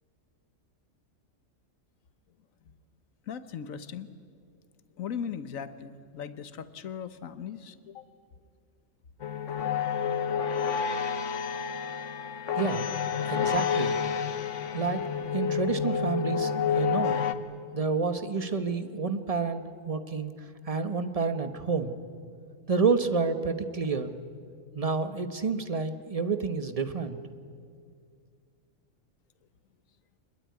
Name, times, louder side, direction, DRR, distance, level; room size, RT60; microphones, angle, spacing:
voice 1, 3.3-4.1 5.0-8.1, left 7 dB, 85° left, 12 dB, 1.4 m, -38 dB
sound 1, 9.2-17.3, left 7 dB, 70° left, 1.3 m, -29 dB
voice 2, 12.6-12.9 13.3-14.0 14.7-15.0 15.3-17.2 17.7-20.3 20.7-21.9 22.7-24.1 24.7-27.2, right 5 dB, 30° right, 10 dB, 1.2 m, -29 dB
25.0 x 21.0 x 9.5 m, 2.2 s
omnidirectional pair, 1.4 m